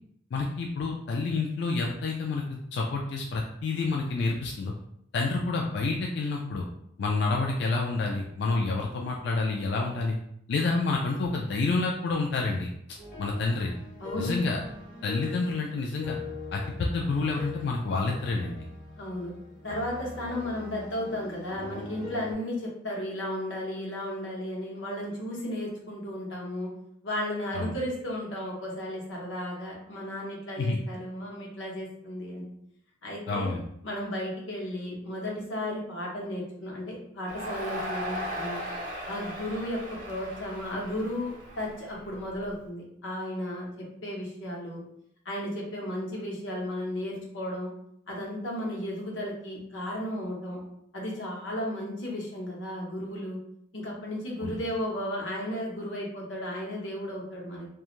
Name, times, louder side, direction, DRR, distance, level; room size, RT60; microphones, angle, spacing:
voice 1, 0.3-2.4 2.7-4.7 5.1-6.6 7.0-10.2 10.5-13.7 14.1-14.6 15.0-16.2 16.5-18.6 27.5-27.8 30.6-30.8 33.3-33.6 54.4-54.6, left 3 dB, 65° left, 0 dB, 0.3 m, -28 dB
sound 1, 13.0-22.3, left 4 dB, 40° left, 0.7 m, -42 dB
voice 2, 14.0-14.3 19.0-19.3 19.6-26.7 27.0-32.5 33.0-33.5 33.8-38.6 39.1-43.7 44.0-44.8 45.2-47.7 48.1-50.6 50.9-53.4 53.7-57.7, left 1 dB, 80° left, -2 dB, 0.8 m, -34 dB
Crowd, 37.3-42.5, equal, 45° right, 0.6 m, -37 dB
2.4 x 2.3 x 3.0 m, 0.73 s
head